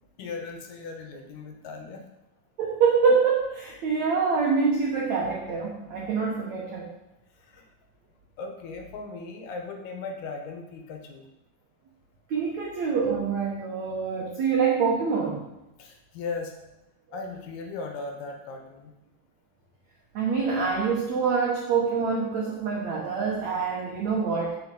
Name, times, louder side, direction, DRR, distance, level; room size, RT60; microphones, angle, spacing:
voice 1, 0.2-2.0 7.3-7.7 8.4-11.3 15.8-16.5 17.1-18.9, left 4 dB, 70° left, 3 dB, 2.8 m, -37 dB
voice 2, 2.6-6.9 12.3-15.5 20.1-24.5, right 5 dB, 85° right, -1 dB, 1.5 m, -25 dB
7.6 x 6.5 x 7.5 m, 0.92 s
omnidirectional pair, 5.2 m